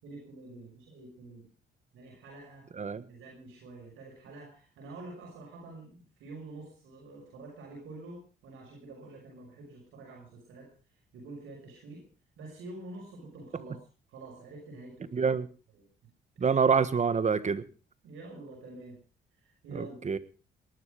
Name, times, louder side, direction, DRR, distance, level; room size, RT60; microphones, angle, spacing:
voice 1, 0.0-1.5 1.9-2.7 3.1-12.1 12.4-13.8 14.1-15.2 15.7-15.8 16.4-16.6 18.0-19.0 19.4-20.0, right 2 dB, 85° right, 5.9 m, -47 dB
voice 2, 15.1-15.5 16.4-17.6 19.8-20.2, right 5 dB, 35° right, 1.4 m, -26 dB
19.0 x 12.5 x 5.1 m
cardioid pair, 90°, 20 cm